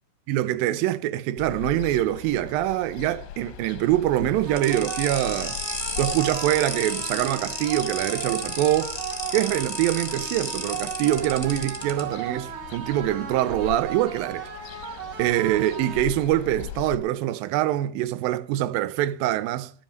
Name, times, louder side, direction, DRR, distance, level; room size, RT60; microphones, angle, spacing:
voice 1, 0.3-5.6 6.0-9.0 9.3-14.5 15.2-19.7, right 13 dB, 80° right, 2.1 m, -24 dB
Ocean, 1.4-17.0, left 11 dB, 85° left, 3.1 m, -41 dB
sound 1, 4.5-16.5, right 9 dB, 55° right, 4.1 m, -36 dB
sound 2, 4.6-12.0, left 2 dB, 35° left, 0.4 m, -33 dB
12.5 x 7.1 x 6.4 m
omnidirectional pair, 4.8 m